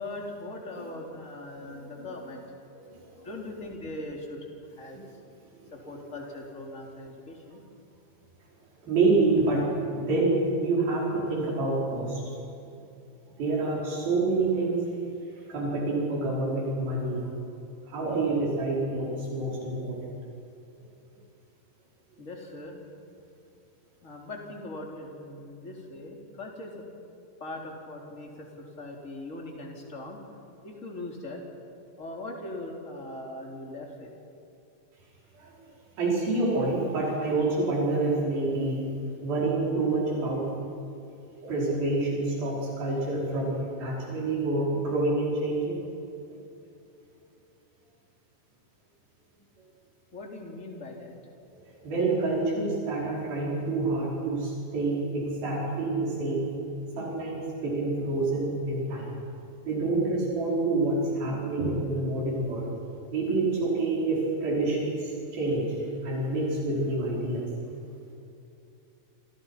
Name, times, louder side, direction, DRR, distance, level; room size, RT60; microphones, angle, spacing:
voice 1, 0.0-2.4 3.2-4.4 4.8-5.0 5.7-7.6 22.2-22.8 24.0-26.7 27.4-30.2 30.6-31.4 32.0-34.1 50.1-51.1, left 2 dB, 20° left, 0 dB, 3.7 m, -40 dB
voice 2, 1.6-2.0 2.7-3.4 4.9-5.0 5.6-6.1 8.8-9.7 10.0-12.2 13.3-14.9 15.5-17.3 17.9-20.1 35.3-35.5 36.0-38.8 39.2-40.5 41.4-45.8 46.3-46.4 51.5-56.5 57.0-59.1 59.6-62.7 63.1-67.5, right 2 dB, 90° right, -5 dB, 7.2 m, -27 dB
29.0 x 26.5 x 5.9 m, 2.8 s
omnidirectional pair, 4.1 m